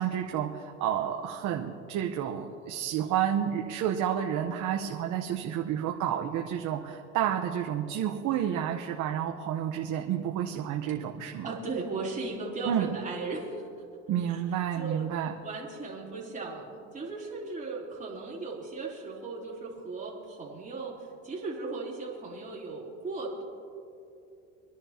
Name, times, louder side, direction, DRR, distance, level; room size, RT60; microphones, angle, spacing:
voice 1, 0.0-11.5 12.7-13.0 14.1-15.3, right 9 dB, 60° right, 2 dB, 1.1 m, -30 dB
voice 2, 11.4-13.6 14.3-14.4 14.8-15.1 15.4-23.4, right 3 dB, 20° right, -4 dB, 3.8 m, -37 dB
28.0 x 11.0 x 2.9 m, 2.6 s
supercardioid pair, 105°, 34 cm